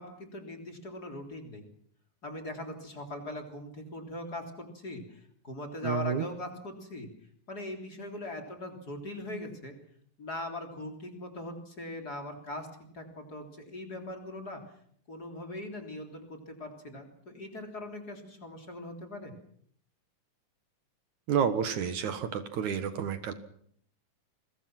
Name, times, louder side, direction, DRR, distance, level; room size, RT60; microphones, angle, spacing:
voice 1, 0.0-1.6 2.2-5.2 5.4-7.1 7.5-9.7 10.2-12.7 12.9-14.6 15.1-19.3, left 1 dB, 30° left, 3 dB, 3.7 m, -40 dB
voice 2, 5.8-6.2 21.3-23.3, right 7 dB, 65° right, 9 dB, 2.8 m, -30 dB
28.0 x 22.5 x 6.1 m, 0.63 s
omnidirectional pair, 3.8 m